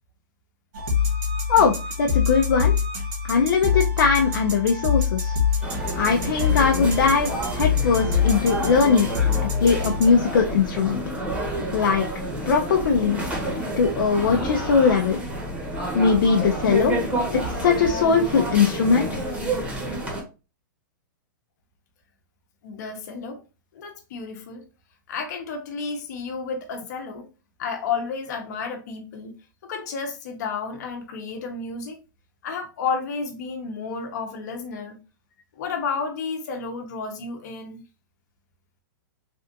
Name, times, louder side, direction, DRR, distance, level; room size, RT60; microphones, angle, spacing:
sound 1, 0.7-10.2, left 6 dB, 55° right, 1.5 m, -25 dB
voice 1, 1.5-2.7 3.2-5.4 5.9-9.1 9.6-11.0 11.7-12.1 12.5-13.2 13.8-15.2 15.9-16.9 17.6-19.1, left 5 dB, 75° left, 0.5 m, -20 dB
sound 2, 5.6-20.2, right 1 dB, 10° right, 0.9 m, -29 dB
voice 2, 22.6-23.4 23.7-24.6 25.1-27.3 27.6-29.3 29.6-32.0 32.4-35.0 35.6-37.8, left 5 dB, 55° left, 0.9 m, -31 dB
3.4 x 2.4 x 2.6 m
hypercardioid pair, 155°, 11 cm